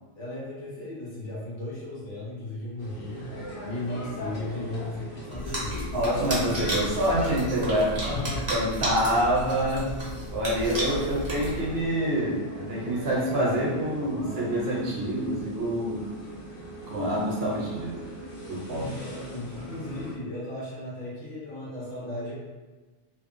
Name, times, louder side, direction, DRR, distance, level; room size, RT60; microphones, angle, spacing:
voice 1, 0.1-6.0 7.9-8.5 18.7-22.3, left 1 dB, 90° left, -7 dB, 1.4 m, -36 dB
sound 1, 2.8-20.1, equal, 55° left, 0.8 m, -41 dB
sound 2, 5.3-11.9, equal, 30° right, 0.7 m, -33 dB
voice 2, 5.9-8.2 8.5-9.9 10.3-16.1 16.8-18.0 18.5-18.9, right 1 dB, 60° right, -5 dB, 0.9 m, -26 dB
2.9 x 2.2 x 2.5 m, 1.2 s
omnidirectional pair, 1.2 m